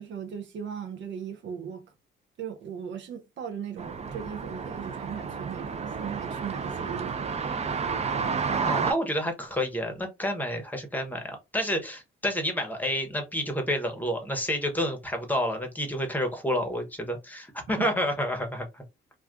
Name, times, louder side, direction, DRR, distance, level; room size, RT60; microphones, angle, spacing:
voice 1, 0.0-1.9 2.4-7.4 8.5-8.8 17.7-17.9, right 8 dB, 70° right, 0.7 m, -38 dB
sound 1, 3.8-8.9, right 5 dB, 35° right, 0.5 m, -31 dB
voice 2, 8.7-18.8, equal, 10° left, 0.9 m, -29 dB
2.4 x 2.3 x 3.5 m
cardioid pair, 90°, 20 cm